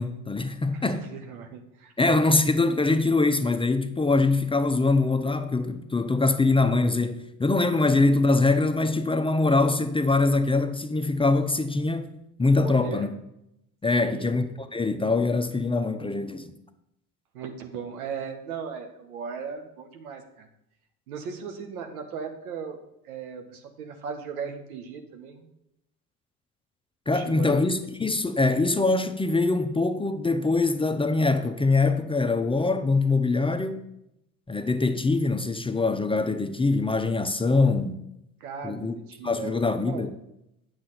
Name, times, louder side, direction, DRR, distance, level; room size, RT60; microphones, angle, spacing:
voice 1, 0.0-1.1 2.0-12.1 12.4-13.1 13.8-16.5 27.1-33.8 34.5-38.0 38.6-39.0 39.2-40.1, left 3 dB, 10° left, 0.7 m, -23 dB
voice 2, 0.7-1.9 12.6-13.1 13.9-14.3 17.3-20.5 21.1-22.8 23.0-25.5 27.1-27.7 38.4-40.1, right 6 dB, 80° right, 1.2 m, -37 dB
8.9 x 6.9 x 4.2 m
hypercardioid pair, 60°, 43 cm